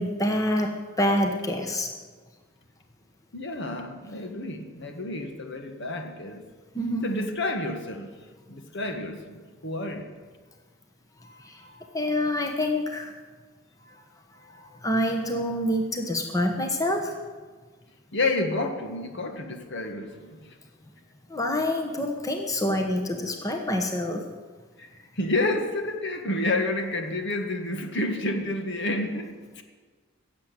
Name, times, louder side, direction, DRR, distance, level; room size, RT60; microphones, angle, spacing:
voice 1, 0.0-1.9 6.7-7.1 11.2-13.1 13.9-14.0 14.4-17.2 21.3-24.3, left 1 dB, 15° left, 3 dB, 1.2 m, -27 dB
voice 2, 3.3-6.4 7.0-8.1 8.5-10.1 18.1-20.6 24.8-29.6, left 2 dB, 55° left, 5 dB, 1.6 m, -30 dB
16.5 x 7.7 x 9.0 m, 1.4 s
head